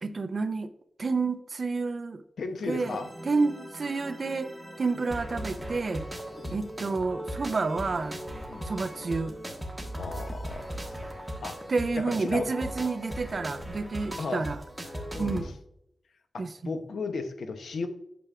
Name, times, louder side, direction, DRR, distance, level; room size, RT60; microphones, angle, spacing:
voice 1, 0.0-0.7 1.0-2.2 2.7-3.0 3.3-4.5 4.8-6.0 6.5-8.2 8.6-9.4 11.7-14.6 15.2-15.5 16.4-16.7, right 4 dB, 50° right, 11 dB, 0.5 m, -29 dB
voice 2, 2.4-3.1 4.9-5.1 6.4-6.6 8.5-8.7 10.0-11.0 11.4-11.6 12.0-12.5 14.2-14.4 15.1-15.6 16.3-17.9, left 4 dB, 85° left, 8 dB, 0.8 m, -35 dB
sound 1, 2.7-15.4, equal, 5° right, 1.4 m, -38 dB
8.6 x 6.9 x 2.4 m, 0.76 s
wide cardioid pair, 105°, 0 cm